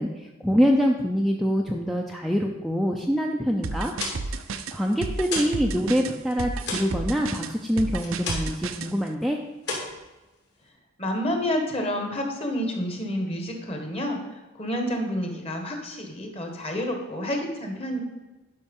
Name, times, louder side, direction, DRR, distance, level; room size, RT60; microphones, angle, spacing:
voice 1, 0.0-3.9 4.3-4.4 4.7-9.4, equal, ahead, 0 dB, 0.5 m, -25 dB
sound 1, 3.6-8.9, right 3 dB, 80° right, 0.6 m, -32 dB
sound 2, 3.7-5.7 5.9-8.7 9.0-9.3 9.6-10.7, left 3 dB, 55° left, 2.7 m, -34 dB
voice 2, 11.0-18.0, left 1 dB, 30° left, 3 dB, 1.4 m, -29 dB
10.5 x 5.7 x 5.4 m, 1.1 s
head